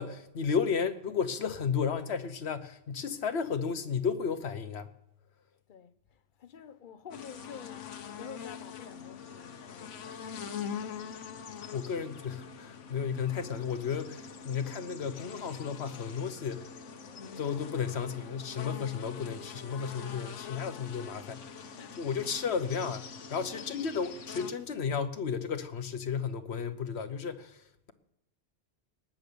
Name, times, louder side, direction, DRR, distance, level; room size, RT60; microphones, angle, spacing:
voice 1, 0.0-4.9 11.7-16.7 17.4-21.7 22.0-27.9, left 6 dB, 65° left, 1.2 m, -33 dB
voice 2, 5.7-10.8 21.8-22.1 23.5-23.9, left 7 dB, 45° left, 1.0 m, -49 dB
sound 1, 7.1-24.5, left 6 dB, 85° left, 1.3 m, -44 dB
19.0 x 7.4 x 6.9 m
omnidirectional pair, 1.2 m